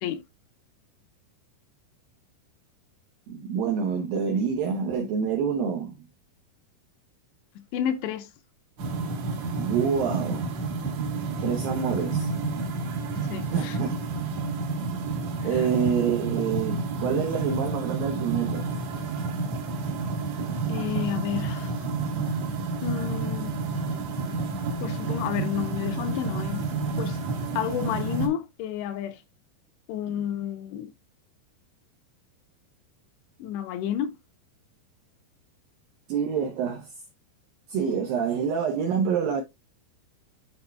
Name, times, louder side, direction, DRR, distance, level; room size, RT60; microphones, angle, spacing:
voice 1, 3.3-5.9 9.6-10.5 11.4-12.3 13.5-13.9 15.4-18.7 36.1-36.9 37.7-39.4, right 7 dB, 80° right, 2.1 m, -27 dB
voice 2, 7.6-8.3 13.3-13.8 20.7-21.8 22.8-23.6 24.8-26.7 27.0-27.2 27.6-29.2 29.9-30.9 33.4-34.2, left 10 dB, 80° left, 2.7 m, -30 dB
sound 1, 8.8-28.3, right 3 dB, 60° right, 1.9 m, -30 dB
11.5 x 4.4 x 2.2 m
omnidirectional pair, 5.2 m